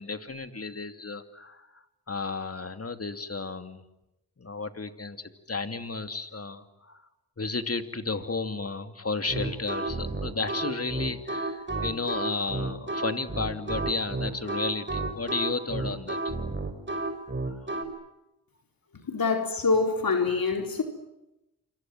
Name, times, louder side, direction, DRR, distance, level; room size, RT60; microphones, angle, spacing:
voice 1, 0.0-3.8 4.4-7.0 7.4-16.4, left 3 dB, 40° left, 8 dB, 2.8 m, -33 dB
sound 1, 9.3-17.8, right 2 dB, 30° right, 5.3 m, -31 dB
voice 2, 18.9-20.8, left 4 dB, 75° left, 4 dB, 4.2 m, -25 dB
28.5 x 25.5 x 7.6 m, 0.91 s
cardioid pair, 50°, 35 cm